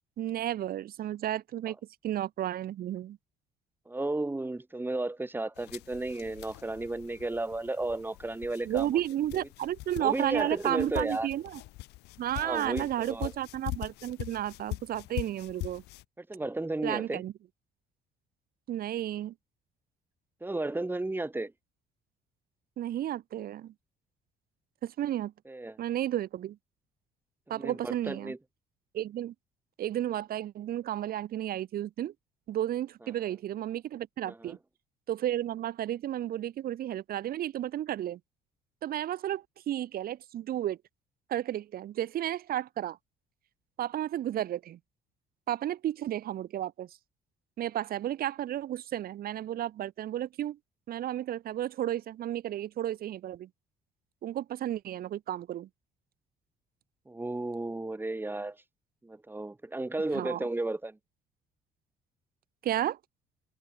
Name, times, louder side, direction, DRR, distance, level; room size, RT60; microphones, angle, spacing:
voice 1, 0.2-1.8 2.0-3.2 8.6-11.6 12.2-15.8 16.8-17.3 18.7-19.3 22.8-23.7 24.8-25.3 25.8-26.6 27.5-28.3 28.9-29.3 29.8-32.1 32.5-34.6 35.1-38.2 38.8-40.8 41.3-43.0 43.8-44.8 45.5-46.9 47.6-50.6 50.9-53.5 54.2-55.7 60.1-60.5 62.6-63.0, right 12 dB, 60° right, 2.5 m, -32 dB
voice 2, 3.9-9.0 10.0-11.3 12.4-13.3 16.2-17.2 20.4-21.5 25.5-25.8 27.5-28.4 34.3-34.6 57.1-58.6 59.0-61.0, right 2 dB, 10° right, 5.8 m, -33 dB
sound 1, 5.5-16.0, left 20 dB, 90° left, 2.5 m, -43 dB
cardioid pair, 110°, 17 cm